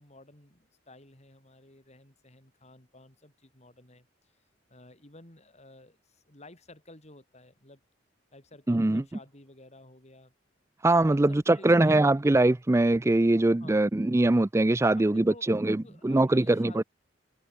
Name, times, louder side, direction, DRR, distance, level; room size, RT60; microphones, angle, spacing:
voice 1, 0.0-4.1 4.7-7.8 8.3-10.3 11.1-12.1 13.6-13.8 15.0-16.8, left 2 dB, 35° left, 5.9 m, -53 dB
voice 2, 8.7-9.0 10.8-15.8 16.0-16.8, right 2 dB, 15° right, 0.4 m, -22 dB
head